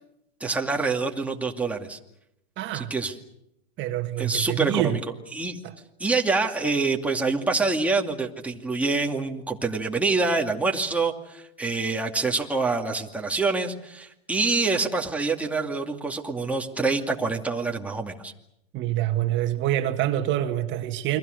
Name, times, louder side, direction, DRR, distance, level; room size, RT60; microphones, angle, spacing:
voice 1, 0.4-2.0 2.7-3.1 4.2-5.0 5.3-5.6 6.0-18.3, right 3 dB, 5° right, 2.4 m, -26 dB
voice 2, 2.6-2.9 3.8-5.0 5.6-5.7 18.7-21.2, right 13 dB, 35° right, 2.1 m, -26 dB
29.5 x 24.0 x 6.6 m
hypercardioid pair, 125°, 32 cm